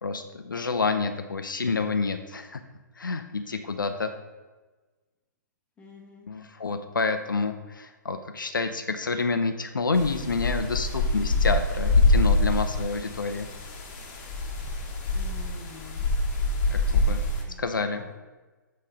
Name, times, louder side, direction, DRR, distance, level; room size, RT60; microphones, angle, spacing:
voice 1, 0.0-2.6 3.0-4.1 6.3-13.5 16.7-17.2 17.6-18.0, left 4 dB, 85° left, 7 dB, 0.6 m, -28 dB
voice 2, 5.8-6.3 15.1-16.1 17.5-17.6 17.9-18.1, left 2 dB, 10° left, -2 dB, 1.3 m, -47 dB
sound 1, 9.9-17.4, left 2 dB, 40° left, 1.3 m, -25 dB
7.6 x 3.3 x 5.0 m, 1.3 s
figure-of-eight pair, 130°, 11 cm